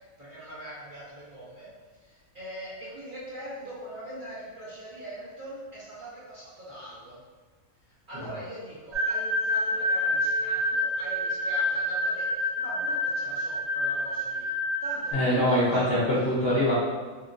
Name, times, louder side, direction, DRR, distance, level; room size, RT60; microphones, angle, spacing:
voice 1, 0.2-7.2 8.1-14.5 14.8-16.3, equal, 45° right, -10 dB, 0.7 m, -42 dB
sound 1, 8.9-15.1, left 1 dB, 70° right, 1.3 m, -28 dB
voice 2, 15.1-16.7, equal, 55° left, -7 dB, 0.8 m, -23 dB
3.0 x 2.9 x 2.5 m, 1.4 s
omnidirectional pair, 1.5 m